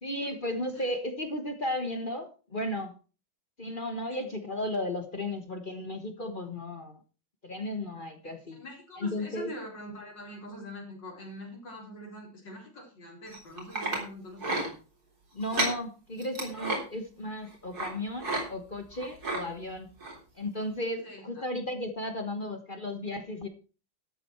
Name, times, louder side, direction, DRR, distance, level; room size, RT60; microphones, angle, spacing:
voice 1, 0.0-2.9 3.6-7.0 7.4-8.6 9.0-9.5 15.3-19.9 20.3-23.5, left 1 dB, 30° left, 7 dB, 1.2 m, -34 dB
voice 2, 8.2-14.8 21.0-21.4, left 1 dB, 75° left, -1 dB, 4.5 m, -44 dB
sound 1, 13.3-14.0 14.4-14.7 15.4-15.8 16.2-16.8 17.7-17.9 18.2-18.4 18.7-19.4 20.0-20.2 20.6-20.7, right 2 dB, 55° right, 4.2 m, -31 dB
13.0 x 8.7 x 4.5 m, 0.35 s
omnidirectional pair, 2.0 m